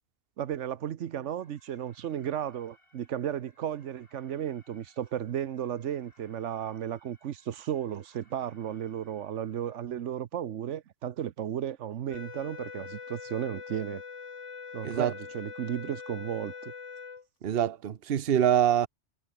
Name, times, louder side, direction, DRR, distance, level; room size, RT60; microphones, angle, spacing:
voice 1, 0.4-14.0 14.7-16.7, right 10 dB, 85° right, 1.2 m, -34 dB
Alarm, 1.4-9.9, left 1 dB, 50° left, 7.8 m, -65 dB
sound 1, 12.1-17.3, left 5 dB, 85° left, 2.0 m, -43 dB
voice 2, 17.4-18.9, right 10 dB, 60° right, 1.0 m, -25 dB
omnidirectional pair, 1.2 m